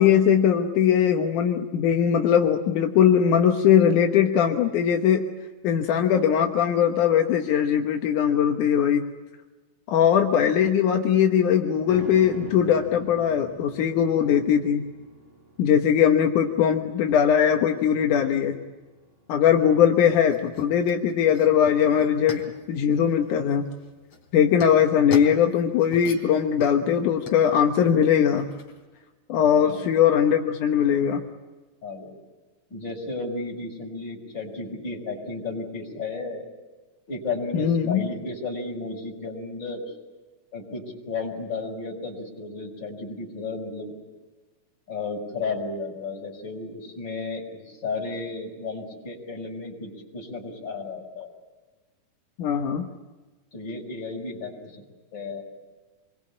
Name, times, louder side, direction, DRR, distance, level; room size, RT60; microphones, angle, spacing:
voice 1, 0.0-5.2 5.6-9.1 9.9-14.9 15.6-18.6 19.3-22.4 22.7-23.7 24.3-28.5 29.3-31.2 37.5-38.1 52.4-52.9, left 8 dB, 80° left, 3 dB, 2.7 m, -20 dB
sound 1, 11.9-21.3 21.6-21.7, right 2 dB, 50° right, 5.3 m, -45 dB
sound 2, 19.6-28.8, left 3 dB, 50° left, 4.1 m, -42 dB
voice 2, 29.5-29.9 31.8-32.1 32.7-36.4 37.1-39.9 40.5-43.9 44.9-51.3 53.5-54.8 55.1-55.4, left 3 dB, 35° left, 0 dB, 6.2 m, -33 dB
27.0 x 23.5 x 8.7 m, 1.2 s
omnidirectional pair, 3.5 m